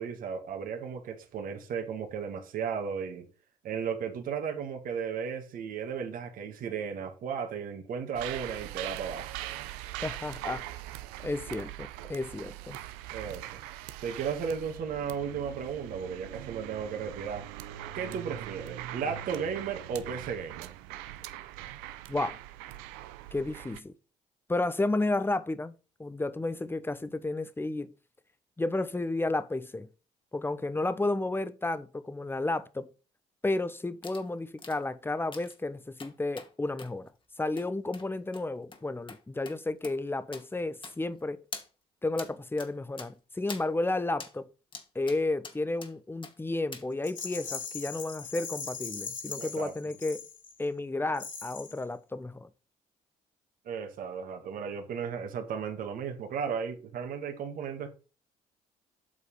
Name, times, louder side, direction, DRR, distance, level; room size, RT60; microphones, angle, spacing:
voice 1, 0.0-3.3 3.6-9.4 13.1-13.6 14.0-17.5 17.9-20.7 49.4-49.7 53.7-57.9, right 6 dB, 65° right, 2.1 m, -35 dB
sound 1, 8.1-23.8, right 14 dB, 85° right, 0.7 m, -42 dB
voice 2, 10.0-10.7 11.2-12.8 22.1-22.4 23.3-23.9 24.5-25.7 26.0-27.9 28.6-29.9 30.3-32.9 33.4-37.1 37.4-41.4 42.0-44.5 44.9-50.2 50.6-52.5, left 2 dB, 15° left, 1.0 m, -32 dB
sound 2, 34.0-34.2 34.6-34.8 35.3-35.6 36.0-36.5 36.8-36.9 37.6-37.7 37.9-38.1 38.3-38.4 38.7-38.8 39.1-39.2 39.5-39.6 39.8-40.0 40.3-40.4 40.8-41.2 41.5-41.7 42.2-42.3 42.6-42.7 43.0-43.1 43.5-43.7 44.2-44.3 44.7-45.2 45.4-45.9 46.2-46.3 46.7-46.8 47.2-47.3, left 4 dB, 35° left, 2.0 m, -44 dB
Rattle, 47.0-50.7 51.1-51.8, left 5 dB, 55° left, 3.1 m, -40 dB
8.4 x 4.8 x 5.5 m
supercardioid pair, 65°, 15 cm